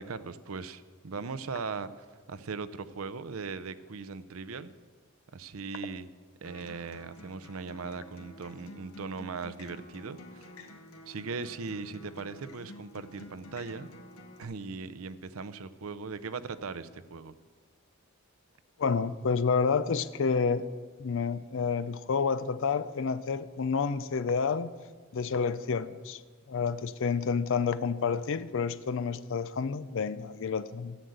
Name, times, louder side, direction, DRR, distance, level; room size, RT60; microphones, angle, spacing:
voice 1, 0.0-4.7 5.3-6.1 6.4-10.5 11.1-13.9 14.4-17.3, right 4 dB, 85° right, 14 dB, 0.7 m, -39 dB
Acoustic guitar, 6.4-14.4, left 1 dB, 90° left, 1.4 m, -50 dB
voice 2, 18.8-20.7 21.0-24.7 25.1-26.2 26.5-31.0, left 5 dB, 65° left, 14 dB, 0.5 m, -29 dB
13.0 x 7.9 x 8.0 m, 1.5 s
head